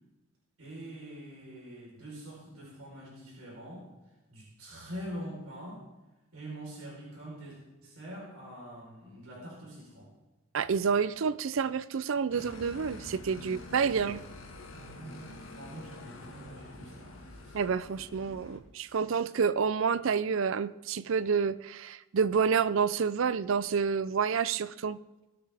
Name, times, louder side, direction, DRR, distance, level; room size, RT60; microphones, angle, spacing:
voice 1, 0.6-3.9 4.3-5.9 6.3-10.1 13.4-13.6 13.9-14.2 14.7-17.6, equal, 85° right, -5 dB, 4.1 m, -45 dB
voice 2, 10.5-14.2 17.5-25.0, right 6 dB, 65° right, 16 dB, 0.4 m, -29 dB
sound 1, 12.3-18.6, left 2 dB, 70° left, 1.7 m, -47 dB
19.5 x 8.7 x 3.5 m, 1.0 s
head